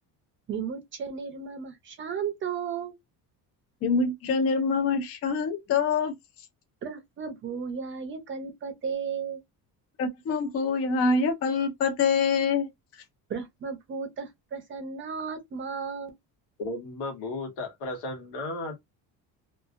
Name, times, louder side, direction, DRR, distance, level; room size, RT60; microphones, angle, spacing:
voice 1, 0.5-2.9 6.8-9.4 13.3-16.1, right 6 dB, 30° right, 0.6 m, -34 dB
voice 2, 3.8-6.1 10.0-12.7, left 4 dB, 35° left, 0.5 m, -25 dB
voice 3, 16.6-18.8, left 2 dB, 85° left, 1.4 m, -34 dB
2.9 x 2.4 x 2.5 m
cardioid pair, 180°, 40 cm